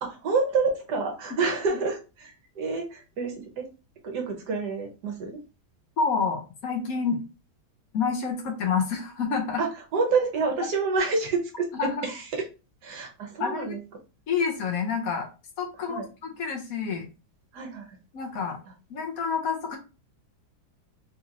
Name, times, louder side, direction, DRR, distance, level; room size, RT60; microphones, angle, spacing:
voice 1, 0.0-3.7 4.0-5.4 9.6-11.7 12.0-12.4 12.8-13.8 15.9-16.1 17.5-18.0, right 4 dB, 75° right, 2 dB, 1.5 m, -28 dB
voice 2, 6.0-7.2 7.9-9.6 11.8-12.0 13.4-13.7 14.3-15.3 15.6-17.1 18.1-18.6 18.9-19.8, left 5 dB, 60° left, 3 dB, 1.1 m, -28 dB
4.0 x 2.9 x 2.5 m, 0.31 s
omnidirectional pair, 1.8 m